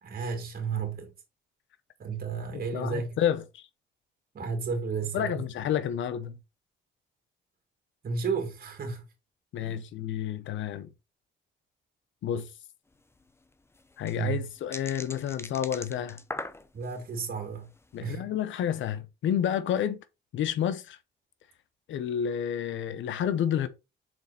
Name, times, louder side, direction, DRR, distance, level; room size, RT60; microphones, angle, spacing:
voice 1, 0.0-1.1 2.0-3.2 4.3-5.4 8.0-9.1 9.6-9.8 14.2-14.5 16.7-17.7 18.0-18.3, right 5 dB, 50° right, 2.2 m, -33 dB
voice 2, 2.5-3.7 5.1-6.4 9.5-10.9 12.2-12.5 14.0-16.2 17.9-20.0 20.3-21.0 21.9-23.7, left 9 dB, 75° left, 0.8 m, -30 dB
sound 1, 12.9-13.0 13.2-13.3 13.7-17.0 17.5-17.8, left 2 dB, 10° left, 0.7 m, -40 dB
6.2 x 4.3 x 4.2 m
cardioid pair, 90°, 20 cm